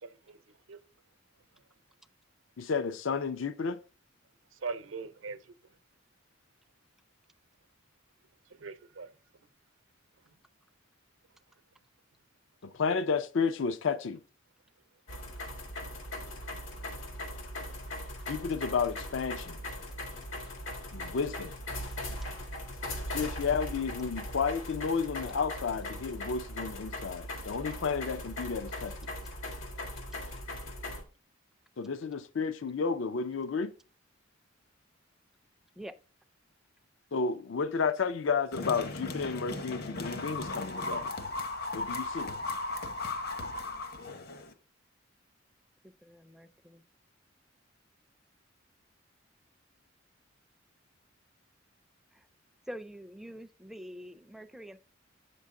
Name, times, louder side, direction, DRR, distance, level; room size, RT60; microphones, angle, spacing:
voice 1, 0.0-0.8 1.5-1.6 4.5-5.6 8.5-9.1 10.2-10.3, right 4 dB, 80° right, 0.7 m, -42 dB
voice 2, 2.6-3.8 12.6-14.2 18.3-19.6 20.9-21.5 23.1-29.1 31.8-33.7 37.1-41.1 41.7-42.3, left 5 dB, 70° left, 0.5 m, -32 dB
sound 1, 15.1-31.0, left 1 dB, 85° left, 1.8 m, -39 dB
sound 2, 38.5-44.5, left 2 dB, 55° left, 0.9 m, -36 dB
voice 3, 45.8-46.8 52.1-52.2 52.7-54.8, equal, ahead, 0.4 m, -45 dB
8.0 x 5.5 x 3.7 m
head